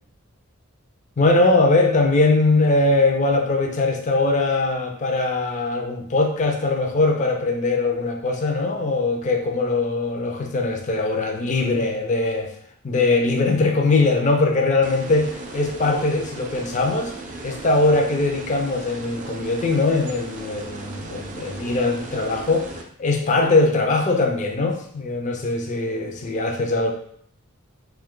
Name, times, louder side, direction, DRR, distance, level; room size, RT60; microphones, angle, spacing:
voice 1, 1.2-12.5 12.8-17.1 17.4-26.9, left 3 dB, 35° left, 2 dB, 0.4 m, -21 dB
sound 1, 14.8-22.8, right 2 dB, 35° right, 0.3 m, -37 dB
3.1 x 2.2 x 3.6 m, 0.65 s
head